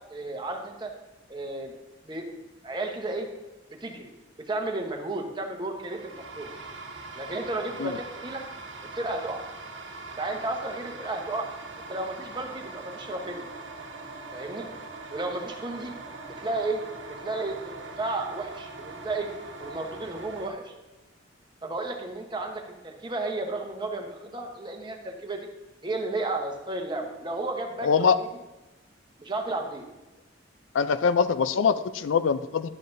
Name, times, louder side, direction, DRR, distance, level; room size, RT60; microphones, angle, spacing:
voice 1, 0.1-0.9 1.3-1.7 2.0-2.2 2.6-3.3 3.8-4.1 4.5-6.5 7.1-8.4 8.9-9.4 10.2-11.5 11.9-13.5 14.3-14.7 15.1-15.9 16.3-16.8 17.2-19.3 19.6-20.7 21.6-25.5 25.8-27.9 28.2-28.3 29.2-29.9, right 2 dB, 25° right, 3 dB, 0.9 m, -33 dB
sound 1, 5.7-20.5, right 3 dB, 70° right, 1.2 m, -42 dB
voice 2, 27.8-28.2 30.7-32.7, left 6 dB, 80° left, 13 dB, 0.4 m, -23 dB
10.5 x 7.6 x 2.6 m, 1.1 s
head